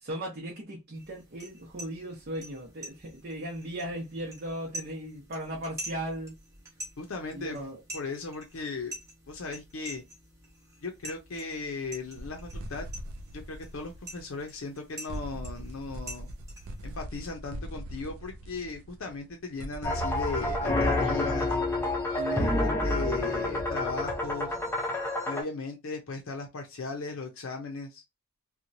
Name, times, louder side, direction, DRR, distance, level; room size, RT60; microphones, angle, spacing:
voice 1, 0.0-6.4 7.3-7.8 22.2-22.6, right 1 dB, 45° right, 0.7 m, -37 dB
sound 1, 0.9-17.0, right 1 dB, 15° right, 0.9 m, -47 dB
voice 2, 7.0-7.6 7.9-8.9 9.3-10.0 10.8-12.9 13.3-16.3 16.8-21.6 22.3-24.6 25.2-28.0, left 4 dB, 65° left, 0.5 m, -37 dB
sound 2, 12.1-14.8 15.1-22.3, right 1 dB, 75° right, 0.4 m, -41 dB
sound 3, 19.8-25.4, left 2 dB, 10° left, 0.5 m, -28 dB
2.9 x 2.2 x 2.6 m
head